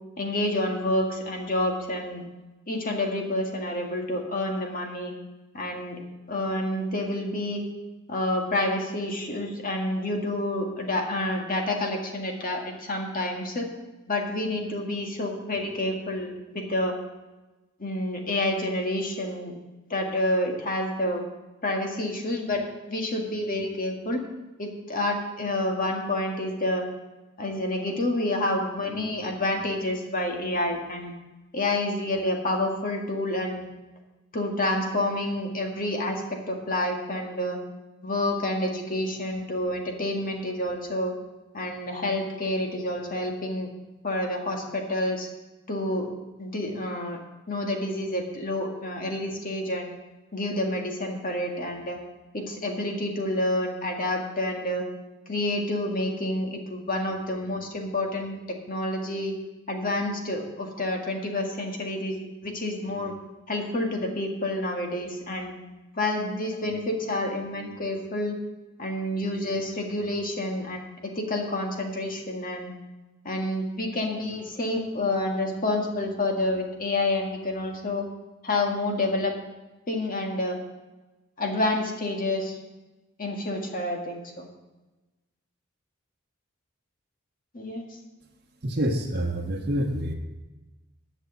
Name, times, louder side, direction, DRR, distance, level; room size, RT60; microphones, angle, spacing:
voice 1, 0.2-2.2 2.7-5.1 5.5-6.0 6.3-7.6 8.1-13.7 14.1-16.9 17.8-19.5 19.9-21.2 21.6-24.2 24.6-26.9 27.4-31.1 31.5-33.7 34.3-36.2 36.5-37.6 38.0-41.1 41.5-43.7 44.0-45.3 45.7-46.1 46.4-47.2 47.5-49.9 50.3-52.0 52.3-54.8 55.3-59.3 59.7-62.2 62.4-63.1 63.5-65.6 66.0-68.4 68.8-70.8 71.2-72.7 73.2-78.1 78.4-79.3 79.9-80.6 81.4-82.6 83.2-84.4 87.5-87.8, left 1 dB, 45° left, 2 dB, 1.9 m, -28 dB
voice 2, 88.6-90.1, equal, 50° right, -1 dB, 1.3 m, -27 dB
10.5 x 6.5 x 7.9 m, 1.1 s
head